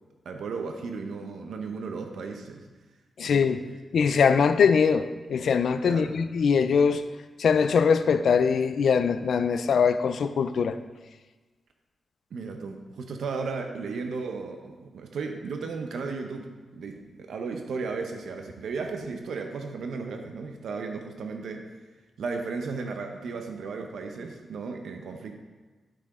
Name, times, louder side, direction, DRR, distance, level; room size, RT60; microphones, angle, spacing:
voice 1, 0.2-2.6 3.3-3.4 5.8-6.1 12.3-16.5 16.7-21.7 22.2-25.3, right 4 dB, 85° right, 0.7 m, -35 dB
voice 2, 3.2-3.6 3.9-7.0 7.4-10.8, left 6 dB, 70° left, 0.4 m, -22 dB
10.0 x 6.0 x 3.7 m
wide cardioid pair, 145°, 0 cm